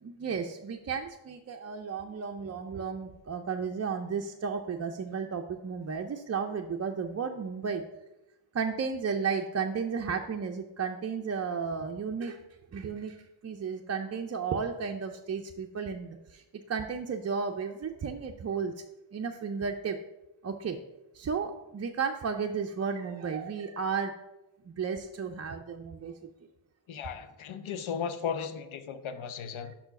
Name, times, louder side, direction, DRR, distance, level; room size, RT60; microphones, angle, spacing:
voice 1, 0.0-7.8 8.5-12.4 12.7-18.7 19.1-20.0 20.4-20.8 21.1-24.2 24.7-26.1, right 6 dB, 35° right, 3 dB, 0.4 m, -33 dB
voice 2, 26.9-29.7, left 7 dB, 75° left, 11 dB, 0.7 m, -36 dB
5.6 x 4.6 x 5.7 m, 0.97 s
wide cardioid pair, 125°, 49 cm